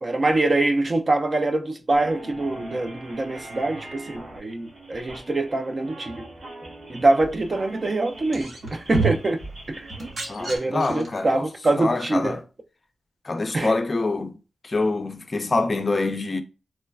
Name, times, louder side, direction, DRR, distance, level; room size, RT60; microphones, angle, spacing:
voice 1, 0.0-6.2 6.9-9.4 9.7-9.9 10.4-12.4 13.5-13.7, right 2 dB, 40° right, 0.4 m, -24 dB
sound 1, 1.9-10.6, right 1 dB, 80° right, 1.2 m, -42 dB
sound 2, 8.2-9.4 9.9-11.2 12.2-12.3, right 4 dB, 60° right, 1.1 m, -29 dB
voice 2, 10.3-11.5 11.8-12.4 13.2-14.4 14.6-16.4, left 3 dB, 35° left, 0.4 m, -25 dB
3.1 x 2.1 x 2.2 m
wide cardioid pair, 100°, 0 cm